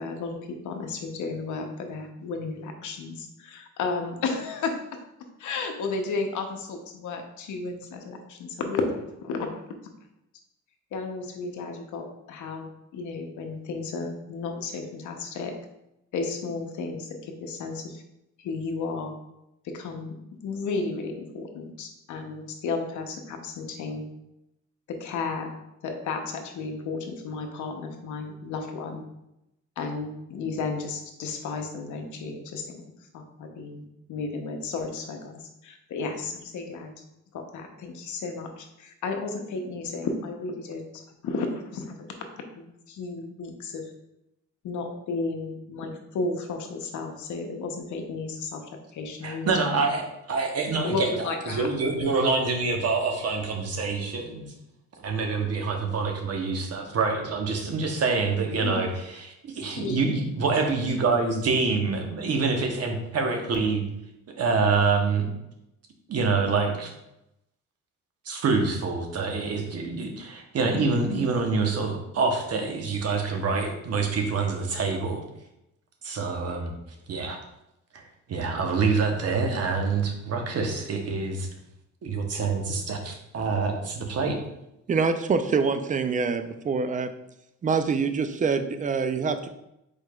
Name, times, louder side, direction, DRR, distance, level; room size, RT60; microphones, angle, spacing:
voice 1, 0.0-4.8 5.4-9.6 10.9-15.5 16.1-18.0 18.4-19.1 19.6-20.1 20.4-24.1 24.9-25.5 25.8-29.0 29.8-37.0 37.3-40.8 41.2-42.1 42.6-43.9 44.6-49.8 50.8-51.7 58.6-58.8 59.8-60.1, left 4 dB, 75° left, 4 dB, 0.8 m, -33 dB
voice 2, 49.2-54.5 55.0-63.8 64.3-65.3 66.1-66.9 68.2-75.2 76.0-76.7 77.1-77.4 77.9-81.5 82.0-84.4, right 4 dB, 55° right, 3 dB, 1.0 m, -26 dB
voice 3, 84.9-87.1 87.6-89.5, right 5 dB, 25° right, 9 dB, 0.4 m, -25 dB
4.7 x 4.4 x 2.3 m, 0.85 s
cardioid pair, 90°, 30 cm